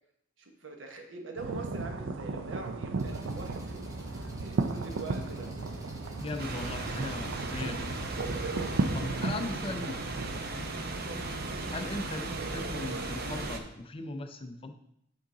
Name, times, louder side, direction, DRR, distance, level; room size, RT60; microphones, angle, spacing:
voice 1, 0.4-3.8 4.4-5.6 11.1-11.3, right 3 dB, 70° right, 3 dB, 1.1 m, -43 dB
sound 1, 1.4-10.4, right 3 dB, 90° right, 0.5 m, -35 dB
Engine, 3.0-9.0, equal, 15° right, 0.9 m, -44 dB
voice 2, 6.2-8.1 8.9-10.1 11.7-14.7, left 2 dB, 30° left, 7 dB, 0.5 m, -38 dB
sound 2, 6.4-13.6, right 2 dB, 55° right, 0.7 m, -36 dB
8.7 x 3.8 x 3.8 m, 0.76 s
head